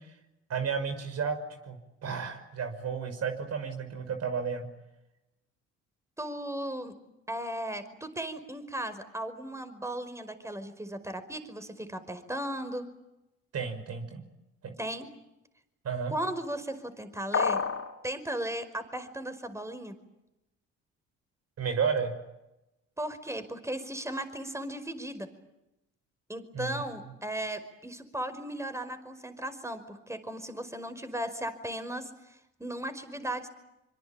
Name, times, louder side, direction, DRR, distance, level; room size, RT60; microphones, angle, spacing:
voice 1, 0.5-4.7 13.5-14.2 14.6-14.8 15.8-16.1 21.6-22.1 26.5-26.8, right 6 dB, 55° right, 7 dB, 6.0 m, -32 dB
voice 2, 6.2-6.9 7.3-12.9 14.8-15.1 16.1-17.6 18.0-20.0 23.0-25.3 26.3-33.5, right 1 dB, 10° right, 10 dB, 5.1 m, -36 dB
sound 1, 17.3-17.9, left 5 dB, 50° left, 4.4 m, -27 dB
25.5 x 24.5 x 9.0 m, 0.93 s
supercardioid pair, 70°, 30 cm